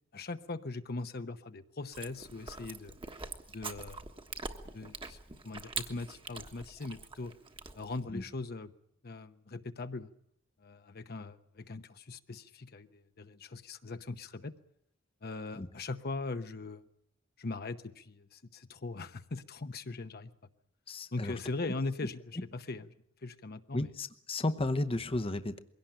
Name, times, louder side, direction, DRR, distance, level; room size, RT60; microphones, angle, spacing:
voice 1, 0.1-2.9 3.5-4.0 4.7-5.2 5.4-7.3 7.7-8.7 9.0-10.1 10.6-14.5 15.2-16.8 17.4-20.3 21.1-22.9 23.2-23.9, left 3 dB, 50° left, 9 dB, 0.9 m, -40 dB
Chewing mastication, 1.9-8.0, right 4 dB, 25° right, 1.4 m, -44 dB
voice 2, 20.9-21.3 21.6-21.7 23.7-25.6, left 2 dB, 30° left, 9 dB, 0.9 m, -33 dB
22.5 x 17.5 x 8.9 m, 0.70 s
head